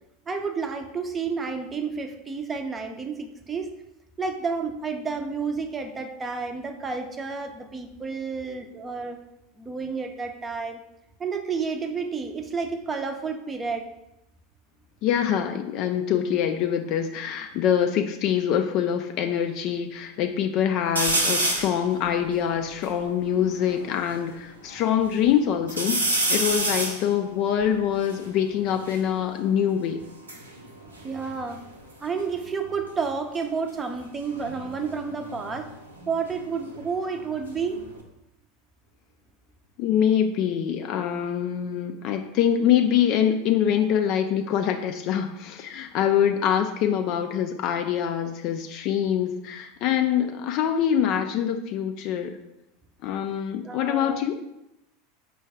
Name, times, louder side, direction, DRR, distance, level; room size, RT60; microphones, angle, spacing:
voice 1, 0.3-3.7 4.2-9.2 9.6-10.8 11.2-13.9 31.0-31.6 32.0-35.7 36.1-37.8 53.6-54.2, right 5 dB, 20° right, 6 dB, 0.6 m, -30 dB
voice 2, 15.0-30.0 39.8-52.4 53.0-54.3, left 9 dB, 50° left, 5 dB, 0.3 m, -24 dB
sound 1, 21.0-21.8 22.4-22.5 22.6-24.2 24.7-25.3 25.7-29.1 30.0-31.9 32.2-32.7 34.2-36.9 37.2-38.0, right 2 dB, 90° right, 0.7 m, -29 dB
4.5 x 2.3 x 4.7 m, 0.87 s
hypercardioid pair, 85°, 0 cm